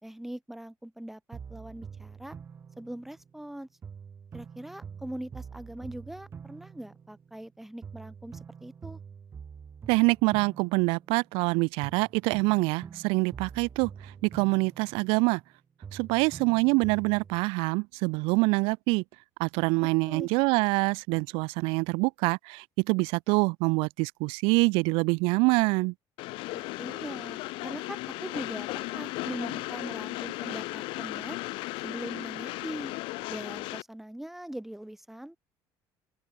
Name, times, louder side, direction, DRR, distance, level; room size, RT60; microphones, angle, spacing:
voice 1, 0.0-2.3 2.8-3.7 4.3-9.0 20.1-20.3 26.5-31.4 31.8-32.9 33.3-35.4, right 1 dB, 5° right, 2.5 m, -41 dB
sound 1, 1.3-3.5 3.8-7.5 7.8-11.5 11.8-15.5 15.8-17.4, right 6 dB, 25° right, 3.8 m, -46 dB
voice 2, 9.9-15.4 15.9-19.0 19.4-25.9, right 28 dB, 85° right, 0.4 m, -25 dB
Train, 26.2-33.8, left 22 dB, 70° left, 0.8 m, -36 dB
open air
cardioid pair, 145°, 9 cm